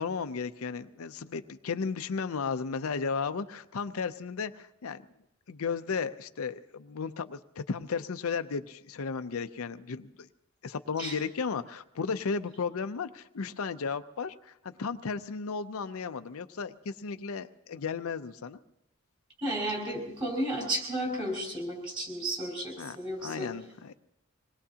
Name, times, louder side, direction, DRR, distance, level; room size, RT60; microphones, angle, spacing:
voice 1, 0.0-5.0 5.5-10.3 10.6-18.6 22.8-23.0 23.2-23.9, left 5 dB, 80° left, 10 dB, 0.5 m, -34 dB
voice 2, 19.4-23.5, right 1 dB, 20° right, -1 dB, 5.4 m, -33 dB
25.5 x 20.0 x 2.8 m, 0.81 s
head